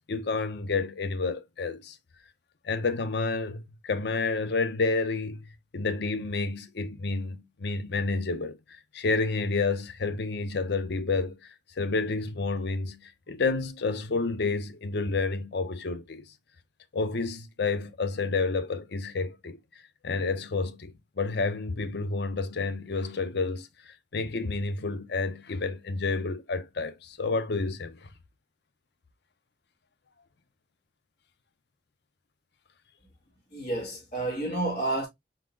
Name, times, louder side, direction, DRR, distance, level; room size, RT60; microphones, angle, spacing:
voice 1, 0.1-2.0 2.6-8.6 8.9-11.4 11.8-16.2 16.9-19.6 20.0-28.1, left 3 dB, 65° left, 0.6 m, -30 dB
voice 2, 33.5-35.1, right 2 dB, 40° left, 1.8 m, -30 dB
4.5 x 4.0 x 2.5 m
head